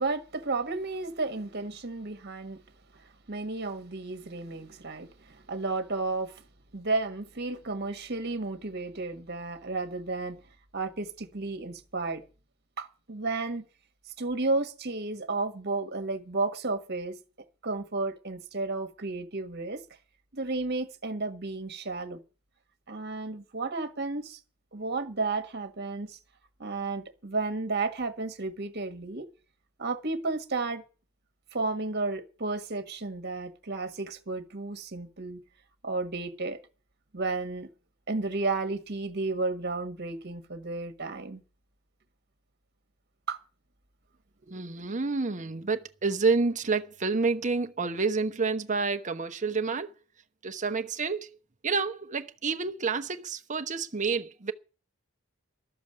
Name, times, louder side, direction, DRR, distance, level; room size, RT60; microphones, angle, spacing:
voice 1, 0.0-2.6 3.3-6.3 6.7-10.4 10.7-12.2 12.8-13.6 14.2-17.2 17.6-19.8 20.3-22.2 22.9-24.4 24.7-26.2 26.6-29.3 29.8-30.8 31.5-35.4 35.8-36.6 37.1-37.7 38.1-41.4 43.3-43.4, right 3 dB, 55° right, 1.6 m, -32 dB
voice 2, 44.5-49.9 50.4-51.3 51.6-54.5, right 4 dB, 35° right, 1.1 m, -29 dB
13.0 x 7.3 x 9.2 m
head